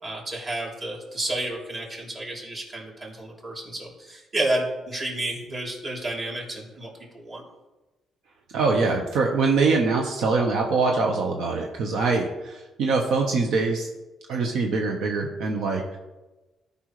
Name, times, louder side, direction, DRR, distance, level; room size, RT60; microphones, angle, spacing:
voice 1, 0.0-7.4, right 1 dB, 35° right, -2 dB, 3.3 m, -31 dB
voice 2, 8.5-13.9 14.3-16.0, right 4 dB, 80° right, 1 dB, 1.0 m, -23 dB
13.5 x 5.5 x 3.2 m, 1.1 s
cardioid pair, 90°, 0 cm